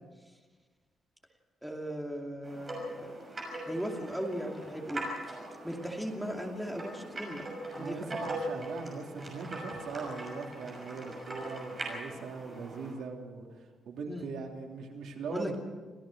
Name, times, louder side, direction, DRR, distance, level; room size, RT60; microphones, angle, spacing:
voice 1, 1.6-3.1 3.6-5.0 5.6-7.4 7.8-8.1 14.1-14.3 15.3-15.6, equal, 5° right, 1 dB, 2.6 m, -37 dB
sound 1, 2.4-12.9, right 1 dB, 25° right, 6.2 m, -41 dB
voice 2, 7.7-13.5 13.8-15.5, right 4 dB, 85° right, 1 dB, 3.2 m, -40 dB
27.0 x 16.5 x 6.4 m, 1.4 s
cardioid pair, 165°, 0 cm